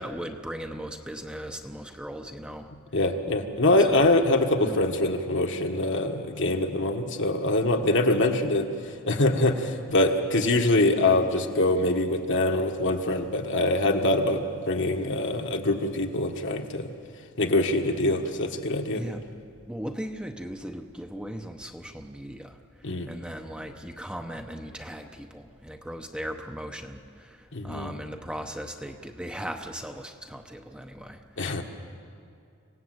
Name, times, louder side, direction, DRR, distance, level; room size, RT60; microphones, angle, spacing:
voice 1, 0.0-2.7 3.9-4.1 4.7-4.8 18.9-19.2 19.7-22.6 23.1-27.4 27.6-31.2, equal, 5° right, 4 dB, 0.8 m, -37 dB
voice 2, 2.9-16.9 17.4-19.0 22.8-23.1 27.5-27.9 31.4-31.6, left 2 dB, 60° left, 3 dB, 1.6 m, -24 dB
26.5 x 17.5 x 7.9 m, 2.3 s
head